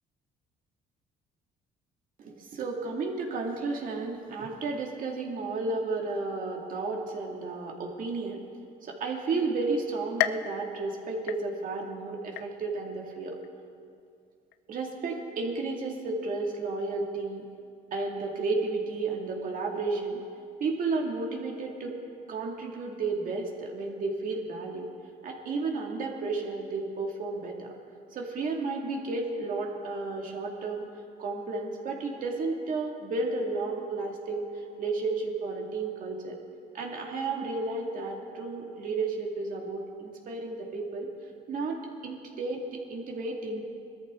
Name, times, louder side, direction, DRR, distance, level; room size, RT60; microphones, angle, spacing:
voice 1, 2.2-8.4 8.8-13.4 14.7-17.4 17.9-20.2 20.6-22.0 22.3-24.9 25.2-27.7 28.1-30.9 31.2-36.4 36.7-41.1 41.5-43.6, right 3 dB, 55° right, 0 dB, 2.3 m, -32 dB
sound 1, 10.2-11.9 12.4-12.9 13.4-13.5 14.5-14.6, left 12 dB, 80° left, 0.5 m, -34 dB
20.5 x 13.5 x 3.7 m, 2.4 s
cardioid pair, 110°, 17 cm